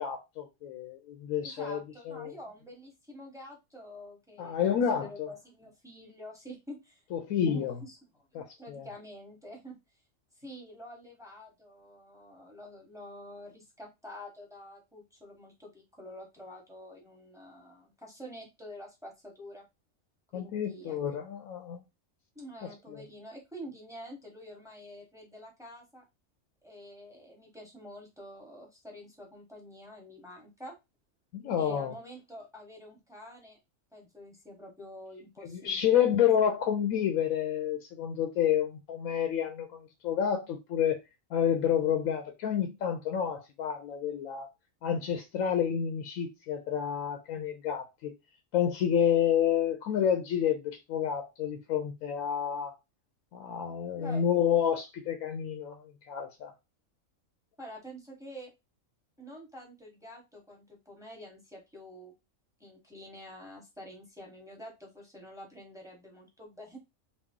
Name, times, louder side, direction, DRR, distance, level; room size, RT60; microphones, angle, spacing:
voice 1, 0.0-2.3 4.4-5.3 7.1-7.8 8.3-8.9 20.3-21.8 22.9-23.0 31.3-31.9 35.4-41.0 41.3-44.5 44.8-48.1 48.5-52.7 53.3-56.5, left 9 dB, 90° left, 1.0 m, -29 dB
voice 2, 1.4-7.0 7.5-8.0 8.3-9.8 10.4-19.6 20.3-21.0 22.3-26.0 26.6-30.8 31.6-33.6 33.9-36.1 53.9-54.2 57.6-58.5 59.2-62.1 62.6-66.8, equal, 5° right, 1.0 m, -47 dB
3.0 x 2.2 x 3.6 m
omnidirectional pair, 1.4 m